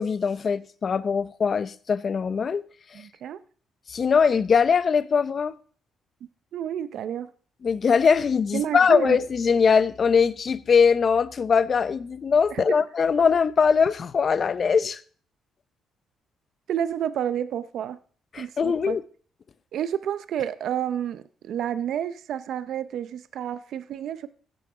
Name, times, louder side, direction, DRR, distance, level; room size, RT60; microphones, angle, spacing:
voice 1, 0.0-2.6 3.9-5.5 7.6-15.0 18.3-19.0, left 6 dB, 45° left, 0.7 m, -21 dB
voice 2, 2.9-3.4 6.5-7.3 8.5-9.2 12.5-12.8 13.2-13.3 16.7-18.0 18.4-19.0 19.7-24.3, right 9 dB, 70° right, 0.6 m, -30 dB
15.5 x 6.6 x 4.9 m
cardioid pair, 90°, 0 cm